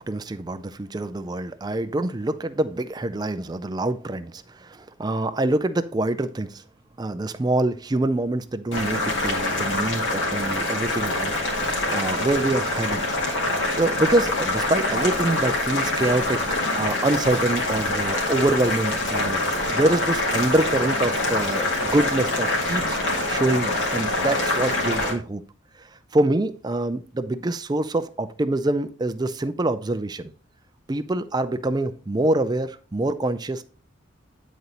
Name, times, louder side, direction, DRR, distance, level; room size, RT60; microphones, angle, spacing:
voice 1, 0.0-6.6 7.0-11.3 11.6-13.1 13.8-19.4 19.7-23.0 23.3-25.4 26.1-30.3 30.9-33.6, right 2 dB, 20° right, 0.4 m, -25 dB
Boiling, 8.7-25.1, left 2 dB, 60° left, 2.0 m, -25 dB
9.6 x 4.1 x 3.9 m
head